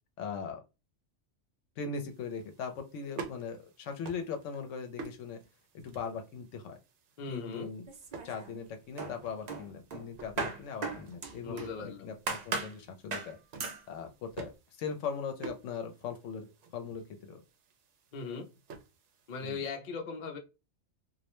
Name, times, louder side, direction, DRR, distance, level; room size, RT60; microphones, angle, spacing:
voice 1, 0.2-0.6 1.8-5.4 5.8-6.8 7.3-7.9 8.2-13.4 13.9-16.5 16.7-17.4 19.4-19.6, left 6 dB, 75° left, 0.9 m, -39 dB
sound 1, 2.0-19.6, right 4 dB, 70° right, 0.9 m, -51 dB
voice 2, 7.2-7.7 11.4-12.1 18.1-18.5 19.3-20.4, left 4 dB, 50° left, 0.6 m, -39 dB
sound 2, 7.9-8.6 9.0-11.8 12.3-12.8 13.1-13.3 13.6-13.8, right 4 dB, 55° right, 0.5 m, -37 dB
2.4 x 2.1 x 2.9 m
omnidirectional pair, 1.3 m